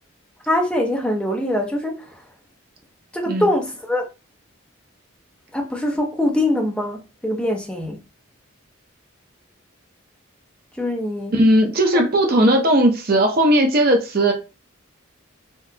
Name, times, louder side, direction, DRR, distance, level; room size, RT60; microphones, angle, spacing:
voice 1, 0.5-2.0 3.1-4.0 5.5-8.0 10.8-11.3 11.9-12.0, left 1 dB, 5° left, 0.6 m, -23 dB
voice 2, 11.3-14.3, right 1 dB, 45° right, 0.6 m, -17 dB
3.5 x 2.4 x 2.8 m
head